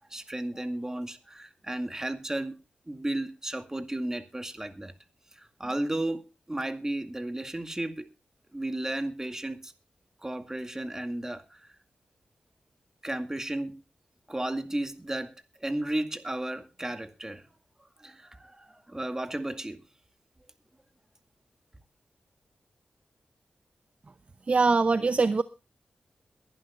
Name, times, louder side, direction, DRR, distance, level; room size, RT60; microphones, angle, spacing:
voice 1, 0.1-2.6 2.9-4.9 5.3-8.1 8.5-9.7 10.2-11.8 13.0-13.8 14.3-17.5 18.0-19.8, right 1 dB, 20° right, 2.2 m, -34 dB
voice 2, 24.5-25.4, right 4 dB, 45° right, 0.7 m, -22 dB
22.5 x 11.0 x 2.6 m
cardioid pair, 65°, 3 cm